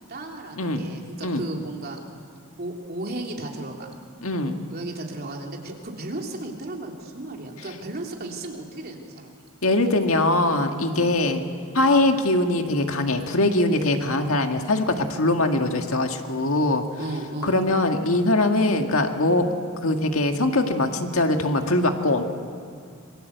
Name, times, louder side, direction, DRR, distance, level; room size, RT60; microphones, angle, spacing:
voice 1, 0.1-2.0 2.6-3.9 4.7-9.3 10.8-11.1 17.0-17.6, right 2 dB, 45° right, 1 dB, 3.2 m, -34 dB
voice 2, 4.2-4.6 9.6-11.4 11.7-16.8 17.4-19.5 19.8-22.2, left 2 dB, 65° left, 5 dB, 1.9 m, -22 dB
26.5 x 22.0 x 8.1 m, 2.3 s
head